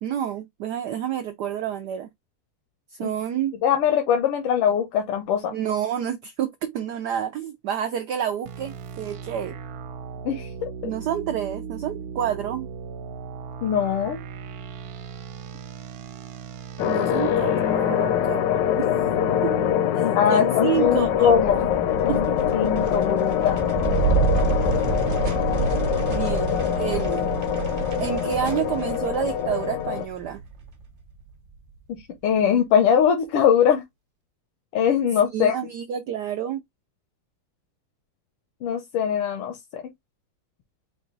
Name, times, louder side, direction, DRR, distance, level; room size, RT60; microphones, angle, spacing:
voice 1, 0.0-2.1 2.9-3.6 5.5-9.6 10.8-12.7 16.8-18.9 19.4-19.6 19.9-21.4 22.1-22.4 26.1-27.3 28.0-30.4 35.3-36.6, right 9 dB, 90° right, 0.9 m, -29 dB
voice 2, 3.6-5.5 10.3-10.7 13.6-14.2 20.0-21.7 22.0-22.3 22.5-23.6 31.9-33.8 34.7-35.6 38.6-39.8, left 8 dB, 90° left, 1.7 m, -22 dB
sound 1, 8.5-19.7, right 6 dB, 70° right, 1.4 m, -37 dB
sound 2, 16.8-30.1, left 10 dB, 75° left, 1.1 m, -24 dB
sound 3, 20.7-31.3, right 5 dB, 50° right, 0.8 m, -28 dB
4.8 x 2.3 x 3.8 m
omnidirectional pair, 2.4 m